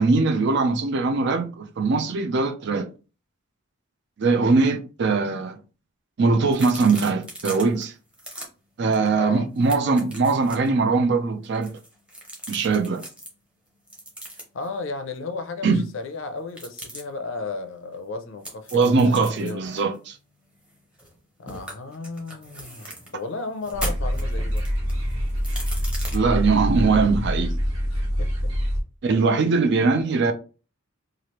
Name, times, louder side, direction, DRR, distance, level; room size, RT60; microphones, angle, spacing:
voice 1, 0.0-2.9 4.2-5.6 6.2-7.9 8.8-11.7 12.5-13.0 15.6-15.8 18.7-20.2 26.1-27.6 29.0-30.3, right 4 dB, 55° right, 0.4 m, -21 dB
sound 1, 6.5-7.8 8.1-8.5 8.9-9.1 9.3-10.7 11.4-13.3 13.9-14.7 16.5-17.0 18.4-21.2 21.5-23.1 23.6-26.2, right 1 dB, 5° right, 0.7 m, -39 dB
voice 2, 9.1-9.5 14.5-19.7 21.4-24.7 27.9-28.3 29.4-29.5, left 4 dB, 60° left, 0.5 m, -34 dB
sound 2, 23.7-28.8, equal, 85° right, 1.3 m, -25 dB
3.1 x 2.4 x 3.0 m
head